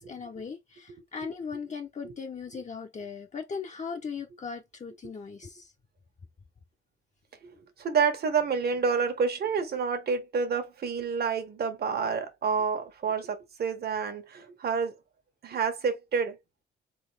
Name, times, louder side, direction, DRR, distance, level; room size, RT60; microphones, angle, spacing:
voice 1, 0.0-5.7, left 5 dB, 35° left, 1.1 m, -38 dB
voice 2, 7.4-14.9 15.4-16.4, right 5 dB, 55° right, 1.5 m, -29 dB
3.8 x 3.8 x 3.5 m
cardioid pair, 90°, 20 cm